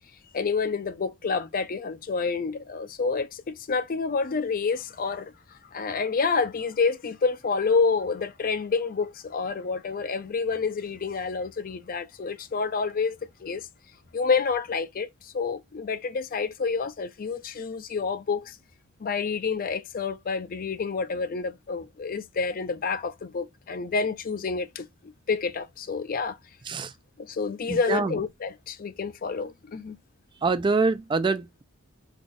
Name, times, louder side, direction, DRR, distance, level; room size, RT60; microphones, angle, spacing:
voice 1, 0.3-13.7 14.1-18.6 19.0-26.4 27.2-30.0, left 5 dB, 40° left, 0.4 m, -28 dB
voice 2, 27.7-28.2 30.4-31.6, right 4 dB, 20° right, 0.3 m, -25 dB
3.8 x 2.3 x 3.5 m
head